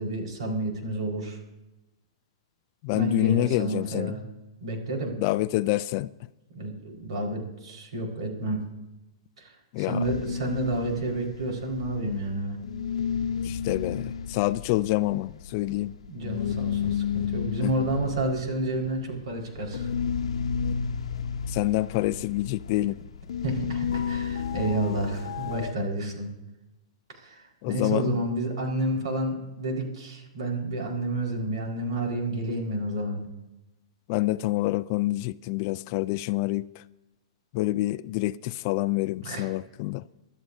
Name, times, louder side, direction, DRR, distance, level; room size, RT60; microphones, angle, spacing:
voice 1, 0.0-1.4 2.9-4.2 4.6-5.1 6.5-8.6 9.4-12.6 16.0-19.9 23.4-26.3 27.2-33.2 39.2-39.5, right 1 dB, 85° right, 4.7 m, -30 dB
voice 2, 2.8-4.1 5.2-6.1 9.7-10.1 13.4-15.9 17.6-17.7 21.5-22.9 27.6-28.2 34.1-36.8 37.5-40.0, left 18 dB, 35° left, 0.3 m, -27 dB
sound 1, 10.0-12.4 12.6-25.7, left 7 dB, 85° left, 0.8 m, -32 dB
25.5 x 12.5 x 2.7 m
hypercardioid pair, 165°, 3 cm